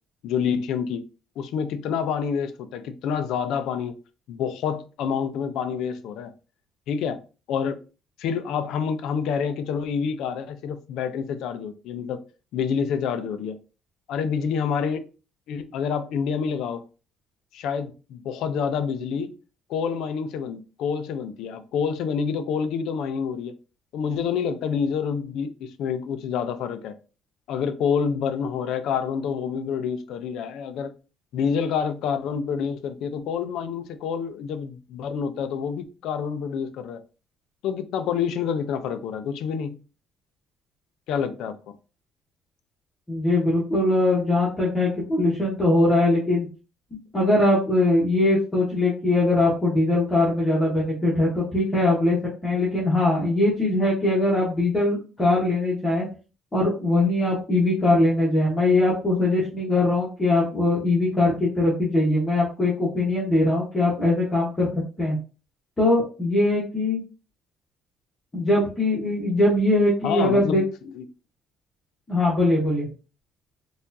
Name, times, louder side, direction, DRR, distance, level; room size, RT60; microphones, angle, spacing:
voice 1, 0.2-1.0 1.4-4.0 4.3-6.3 6.9-7.2 7.5-7.8 8.2-12.2 12.5-13.6 14.1-15.0 15.5-16.8 17.5-19.4 19.7-23.5 23.9-27.0 27.5-30.9 31.3-37.0 37.6-39.8 41.1-41.6 70.0-71.0, left 7 dB, 65° left, 0.4 m, -27 dB
voice 2, 43.1-46.5 47.1-52.2 52.4-56.1 56.5-64.7 65.0-65.2 65.8-67.0 68.3-70.6 72.1-72.9, left 2 dB, 15° left, 1.1 m, -21 dB
4.5 x 2.4 x 2.6 m
cardioid pair, 180°, 0 cm